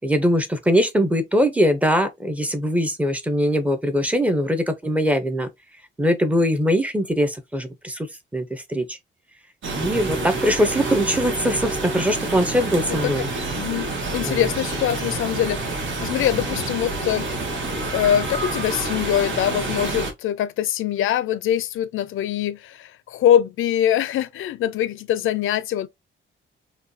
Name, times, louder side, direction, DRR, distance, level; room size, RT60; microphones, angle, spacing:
voice 1, 0.0-5.5 6.0-8.1 8.3-9.0 9.7-13.3 14.3-14.5, equal, 5° right, 0.6 m, -21 dB
sound 1, 9.6-20.1, right 2 dB, 75° right, 1.3 m, -28 dB
voice 2, 13.5-17.3 17.9-25.9, left 10 dB, 80° left, 0.5 m, -23 dB
4.9 x 2.3 x 2.6 m
wide cardioid pair, 155°, 21 cm